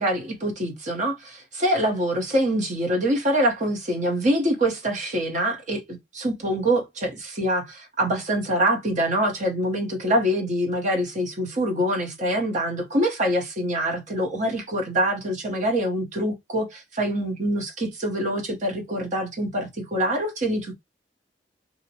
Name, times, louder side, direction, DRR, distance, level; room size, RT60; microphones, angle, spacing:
voice 1, 0.0-20.8, right 1 dB, 45° right, 0.9 m, -25 dB
2.6 x 2.1 x 2.8 m
head